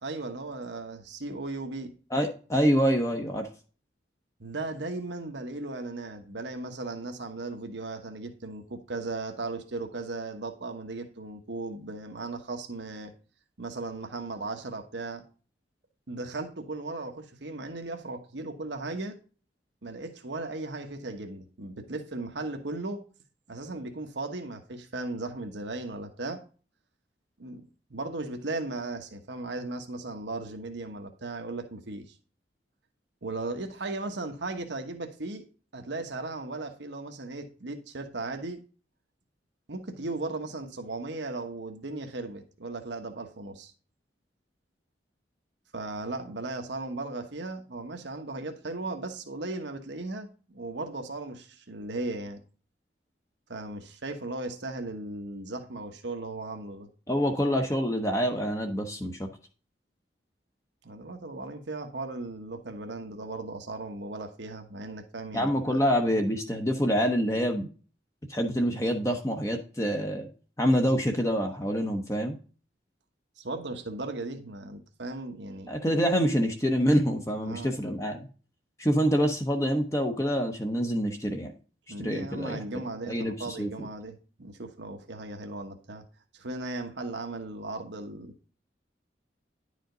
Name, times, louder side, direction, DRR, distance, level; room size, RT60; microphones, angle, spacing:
voice 1, 0.0-1.9 4.4-13.1 13.6-15.2 16.1-19.2 19.8-23.0 23.5-26.4 27.4-27.6 27.9-32.1 33.2-35.4 35.7-38.6 39.7-43.7 45.7-52.4 53.5-56.9 60.8-65.8 73.4-75.7 77.4-77.7 81.9-86.0 86.3-88.5, right 2 dB, 75° right, 5 dB, 1.1 m, -37 dB
voice 2, 2.1-3.5 57.1-59.3 65.3-67.7 68.3-70.3 70.6-72.4 75.7-78.3 78.8-81.5 82.0-82.6 83.1-83.9, equal, 15° left, 3 dB, 0.8 m, -26 dB
10.5 x 5.1 x 3.8 m, 0.38 s
head